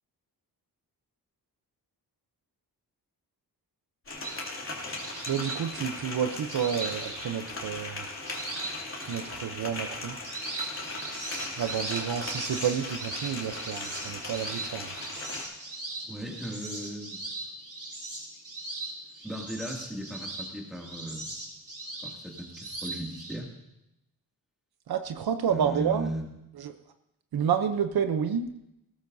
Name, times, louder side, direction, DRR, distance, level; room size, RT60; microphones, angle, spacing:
sound 1, 4.0-15.4, left 2 dB, 35° left, 2.7 m, -38 dB
sound 2, 4.2-7.7 8.3-9.4 9.8-23.4, right 2 dB, 40° right, 5.4 m, -39 dB
voice 1, 5.3-8.1 9.1-10.2 11.6-14.9 24.9-26.1 26.6-26.7 27.3-28.5, right 8 dB, 70° right, 8 dB, 0.8 m, -29 dB
voice 2, 16.0-17.2 19.2-21.3 22.0-23.5 25.5-26.3, right 1 dB, ahead, -2 dB, 2.4 m, -37 dB
19.5 x 16.5 x 2.7 m, 0.87 s
wide cardioid pair, 165°, 38 cm